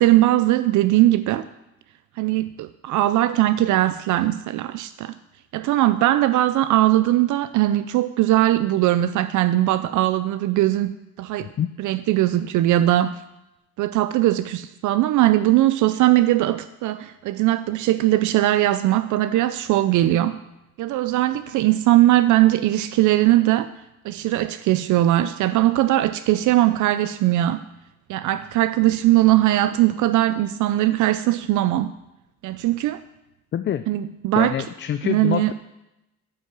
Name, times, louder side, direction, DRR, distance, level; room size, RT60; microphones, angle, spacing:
voice 1, 0.0-1.5 2.2-5.1 5.5-10.9 11.2-11.5 11.8-13.2 13.8-20.4 20.8-23.7 24.0-27.6 28.1-31.9 32.4-33.0 33.9-34.5 35.0-35.5, right 15 dB, 75° right, 12 dB, 0.4 m, -20 dB
voice 2, 11.4-11.7 33.5-33.9 34.4-35.5, left 10 dB, 40° left, 11 dB, 0.4 m, -26 dB
9.7 x 5.5 x 6.1 m, 0.92 s
cardioid pair, 90°, 30 cm